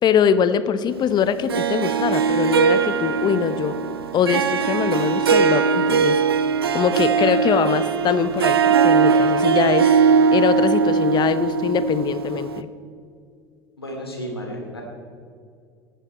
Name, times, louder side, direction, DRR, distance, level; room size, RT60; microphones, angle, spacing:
voice 1, 0.0-3.8 4.1-6.2 6.7-10.0 10.3-12.7, left 8 dB, 35° left, 13 dB, 0.8 m, -22 dB
Harp, 1.5-12.6, right 6 dB, 80° right, 0.6 m, -20 dB
voice 2, 13.8-14.8, equal, 85° left, 0 dB, 2.8 m, -32 dB
16.5 x 12.0 x 4.4 m, 2.3 s
figure-of-eight pair, 70°, 13 cm